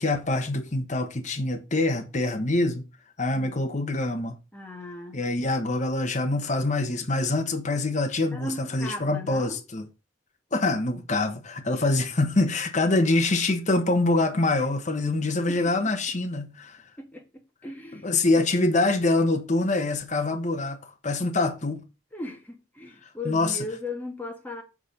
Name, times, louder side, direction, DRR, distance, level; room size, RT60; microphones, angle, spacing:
voice 1, 0.0-2.8 3.2-4.3 5.1-9.9 10.5-16.8 17.9-21.8 23.2-23.6, left 2 dB, 40° left, 1.1 m, -25 dB
voice 2, 4.5-5.2 8.3-9.6 15.5-15.6 17.0-17.2 17.6-18.1 22.1-24.6, left 2 dB, 10° left, 1.6 m, -37 dB
7.3 x 4.3 x 5.3 m
head